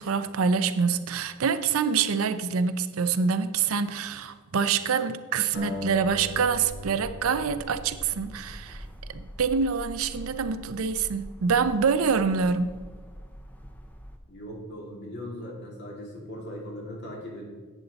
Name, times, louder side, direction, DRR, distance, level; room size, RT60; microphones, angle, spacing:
voice 1, 0.0-12.7, right 5 dB, 70° right, 11 dB, 0.5 m, -26 dB
sound 1, 5.5-8.8, left 1 dB, 70° left, 2.6 m, -39 dB
sound 2, 6.0-14.2, equal, 5° left, 0.6 m, -44 dB
voice 2, 14.3-17.4, equal, 50° left, -1 dB, 2.2 m, -39 dB
11.0 x 8.2 x 4.0 m, 1.4 s
head